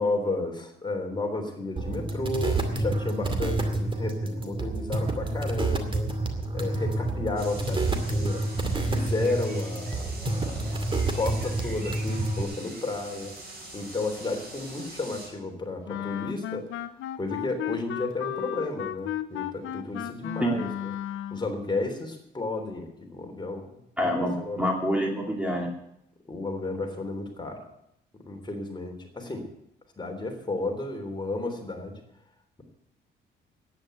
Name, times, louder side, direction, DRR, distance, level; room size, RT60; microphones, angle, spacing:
voice 1, 0.0-6.1 6.5-8.5 8.8-13.3 13.7-16.7 17.2-20.9 21.3-23.7 24.0-24.7 26.3-27.6 28.2-29.5 30.0-32.0, left 2 dB, 25° left, 3 dB, 3.3 m, -32 dB
sound 1, 1.8-12.4, right 2 dB, 25° right, 2.3 m, -28 dB
sound 2, 7.4-15.3, right 2 dB, 50° right, 7.1 m, -43 dB
Wind instrument woodwind instrument, 15.9-21.5, left 11 dB, 80° left, 0.8 m, -34 dB
voice 2, 24.0-25.7, equal, 5° right, 0 dB, 2.8 m, -26 dB
10.5 x 9.6 x 9.1 m, 0.77 s
cardioid pair, 90°, 20 cm